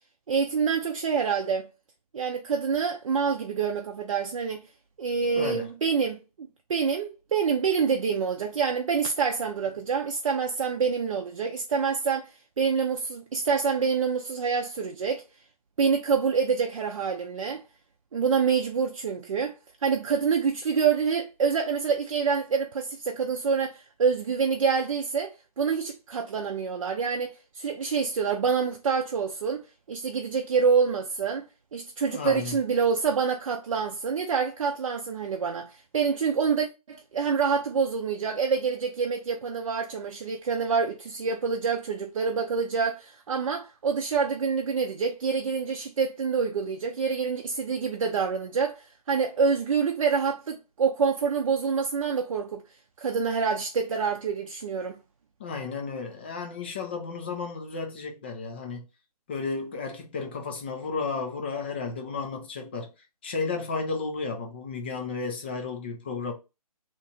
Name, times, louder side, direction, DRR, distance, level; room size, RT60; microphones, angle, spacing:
voice 1, 0.3-1.7 2.1-4.7 5.0-15.2 15.8-17.6 18.1-19.5 19.8-29.6 29.9-52.6 53.0-55.0, right 6 dB, 55° right, 0.5 m, -27 dB
voice 2, 5.3-5.6 32.1-32.6 55.4-58.8 59.3-62.9 63.2-66.3, left 4 dB, 15° left, 0.4 m, -33 dB
2.9 x 2.4 x 4.0 m
figure-of-eight pair, 150°, 20 cm